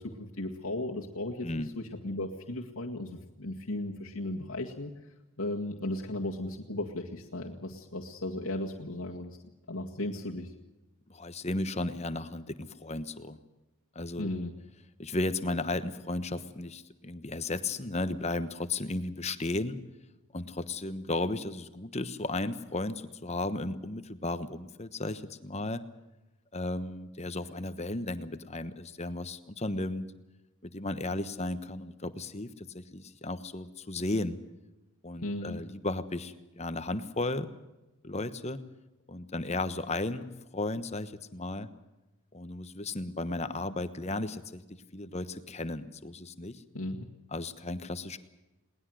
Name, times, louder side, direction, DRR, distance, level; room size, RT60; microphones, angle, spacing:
voice 1, 0.0-4.9 5.4-9.4 9.7-10.5 14.2-14.5 35.2-35.6 46.7-47.1, left 1 dB, 75° left, -1 dB, 1.9 m, -36 dB
voice 2, 11.1-13.4 13.9-14.3 15.0-19.8 20.3-25.8 26.5-30.1 30.6-34.4 35.0-37.5 38.0-38.6 39.1-41.7 42.3-44.6 44.9-46.6 47.3-48.2, left 2 dB, 30° left, 12 dB, 1.1 m, -34 dB
21.5 x 19.0 x 7.8 m, 1.0 s
head